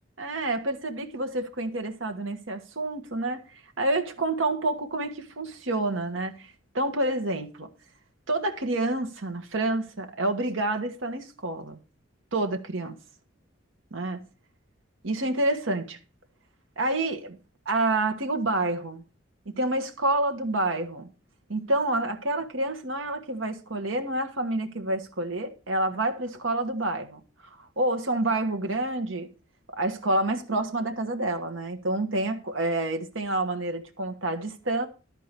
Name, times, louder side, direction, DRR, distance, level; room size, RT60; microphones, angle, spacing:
voice 1, 0.2-6.5 6.7-7.7 8.3-11.8 12.3-13.0 13.9-14.2 15.0-16.0 16.8-17.4 17.6-19.0 19.5-21.1 21.5-27.2 27.8-29.3 29.8-34.9, right 2 dB, 85° right, 1.3 m, -28 dB
12.0 x 4.7 x 6.6 m
head